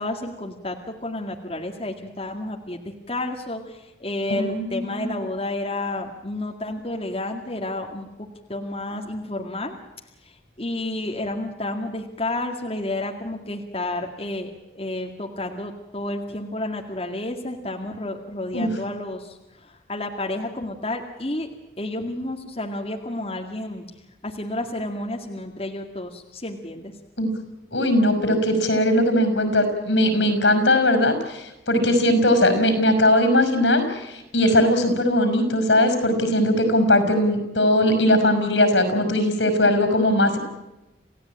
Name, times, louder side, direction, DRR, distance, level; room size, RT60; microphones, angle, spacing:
voice 1, 0.0-8.1 8.5-9.8 10.2-21.5 21.8-23.9 24.2-26.9, left 1 dB, 30° left, 2 dB, 2.1 m, -31 dB
voice 2, 4.3-5.1 18.5-18.7 27.2-27.3 27.7-40.4, left 1 dB, 80° left, 8 dB, 5.5 m, -20 dB
29.0 x 16.5 x 8.8 m, 1.0 s
head